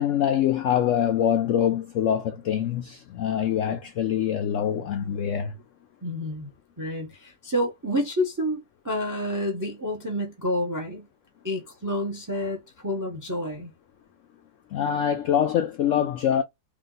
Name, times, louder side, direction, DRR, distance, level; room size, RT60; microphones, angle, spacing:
voice 1, 0.0-5.6 14.7-16.4, left 9 dB, 75° left, 0.7 m, -24 dB
voice 2, 6.0-6.5 6.8-11.1 11.4-13.7, left 1 dB, 15° right, 0.7 m, -29 dB
3.5 x 2.6 x 3.8 m
omnidirectional pair, 1.8 m